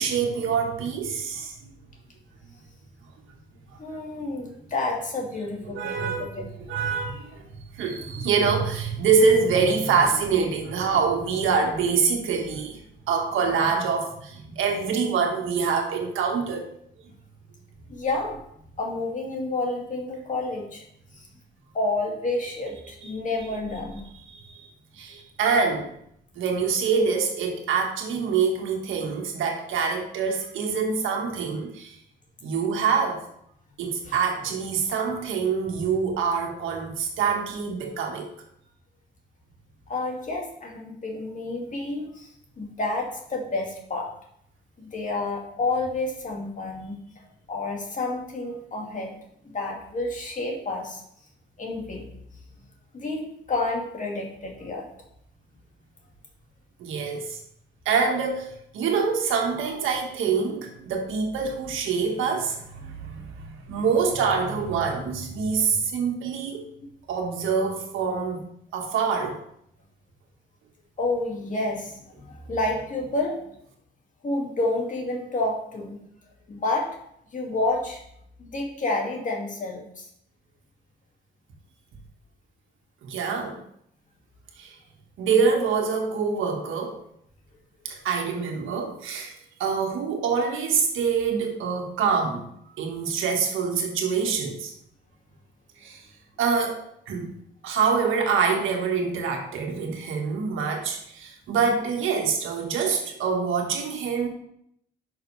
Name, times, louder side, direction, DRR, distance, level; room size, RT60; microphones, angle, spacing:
voice 1, 0.0-1.7 5.7-7.4 7.8-16.7 24.3-24.6 25.0-25.9 26.4-32.0 32.4-33.2 33.8-38.3 56.8-57.4 57.9-66.7 67.1-68.4 68.7-69.4 83.0-83.6 84.6-84.8 85.2-87.0 87.9-92.5 92.8-94.7 95.8-96.1 96.4-97.3 97.6-104.3, right 5 dB, 85° right, 2 dB, 1.7 m, -25 dB
voice 2, 3.8-6.4 7.3-7.4 17.9-18.4 18.8-20.8 21.7-24.0 34.1-34.2 39.9-42.3 42.6-44.1 44.8-47.0 47.5-49.1 49.5-51.0 51.6-52.1 52.9-54.9 71.0-72.0 72.2-73.4 74.2-76.0 76.5-77.0 77.3-78.0 78.4-80.1, left 2 dB, 40° left, 0 dB, 2.3 m, -29 dB
10.5 x 6.0 x 3.3 m, 0.73 s
cardioid pair, 90°, 20 cm